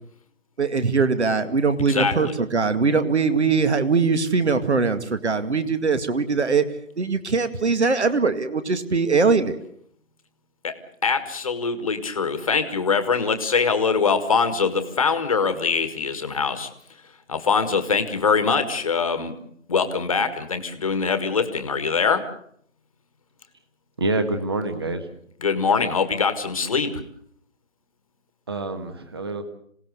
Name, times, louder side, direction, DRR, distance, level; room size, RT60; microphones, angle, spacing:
voice 1, 0.6-6.6 7.0-9.6, right 4 dB, 55° right, 11 dB, 2.3 m, -21 dB
voice 2, 1.9-2.3 10.6-16.7 17.3-19.3 19.7-22.2 25.4-27.0, left 5 dB, 25° left, 10 dB, 1.7 m, -23 dB
voice 3, 24.0-25.1 28.5-29.4, right 2 dB, 20° right, 9 dB, 1.4 m, -26 dB
27.0 x 17.5 x 8.1 m, 0.67 s
figure-of-eight pair, 165°, 41 cm